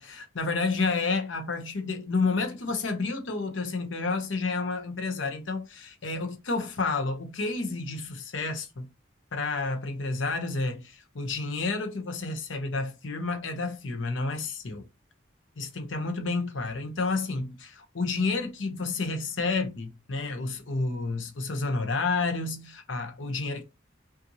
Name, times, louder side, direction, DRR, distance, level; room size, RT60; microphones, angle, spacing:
voice 1, 0.0-8.9 9.3-14.8 15.6-23.6, left 3 dB, 85° left, 0.8 m, -30 dB
5.3 x 2.5 x 2.8 m
head